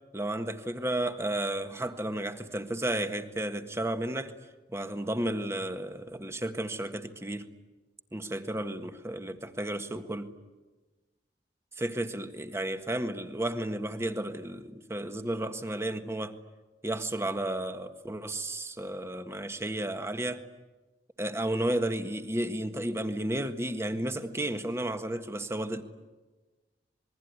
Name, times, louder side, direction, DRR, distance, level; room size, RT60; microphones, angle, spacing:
voice 1, 0.1-4.3 4.7-7.5 8.1-10.4 11.8-16.3 16.8-20.4 21.2-25.8, right 1 dB, 15° right, 7 dB, 1.6 m, -33 dB
27.5 x 22.0 x 9.7 m, 1.2 s
head